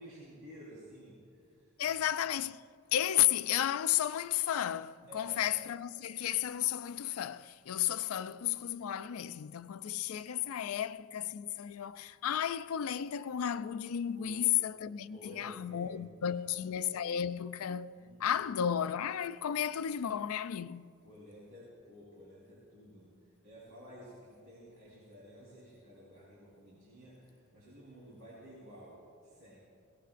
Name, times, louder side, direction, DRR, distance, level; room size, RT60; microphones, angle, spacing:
voice 1, 0.0-2.0 5.1-5.4 14.1-14.4 15.1-16.4 17.9-18.4 21.0-23.1 23.4-29.6, equal, 70° right, 4.0 m, -53 dB
voice 2, 1.8-2.6 2.9-20.9, left 10 dB, 75° left, 0.4 m, -33 dB
22.5 x 17.5 x 2.5 m
head